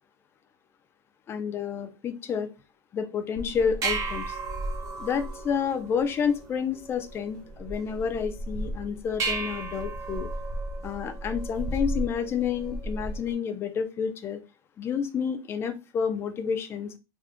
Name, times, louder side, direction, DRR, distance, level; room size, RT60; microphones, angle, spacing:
voice 1, 1.3-2.5 2.9-4.4 5.0-10.3 10.8-14.4 14.8-16.9, left 7 dB, 15° left, 8 dB, 0.3 m, -29 dB
sound 1, 3.4-13.3, right 2 dB, 25° right, 0.8 m, -34 dB
3.5 x 2.1 x 3.6 m, 0.28 s
supercardioid pair, 170°, 14 cm